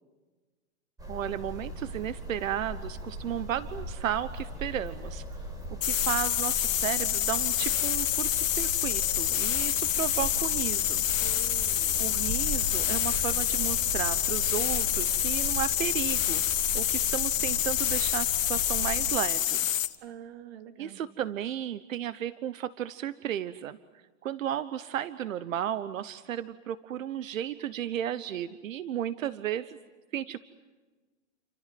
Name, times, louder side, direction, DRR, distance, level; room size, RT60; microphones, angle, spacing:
sound 1, 1.0-19.2, equal, 10° right, 5.4 m, -38 dB
voice 1, 1.1-5.2 5.8-11.0 12.0-19.7 20.8-29.8 30.1-30.4, right 10 dB, 90° right, 14 dB, 1.1 m, -34 dB
sound 2, 5.8-20.0, left 11 dB, 85° left, 1.4 m, -27 dB
voice 2, 11.2-12.2 20.0-21.0, right 9 dB, 55° right, 6 dB, 2.6 m, -46 dB
30.0 x 25.5 x 7.8 m, 1.3 s
hypercardioid pair, 145°, 38 cm